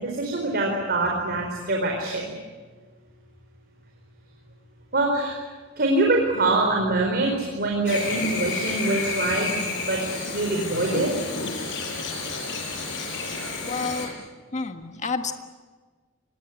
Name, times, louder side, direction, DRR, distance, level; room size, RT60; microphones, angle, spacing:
voice 1, 0.0-2.3 4.9-5.4 5.8-10.0 10.3-11.1, right 2 dB, 50° right, 0 dB, 4.5 m, -24 dB
Chirp tweet / Buzz, 7.9-14.1, left 3 dB, 65° left, 7.5 m, -30 dB
voice 2, 13.7-14.1 14.5-15.3, left 4 dB, 35° left, 7 dB, 1.6 m, -29 dB
25.5 x 20.5 x 9.8 m, 1.4 s
head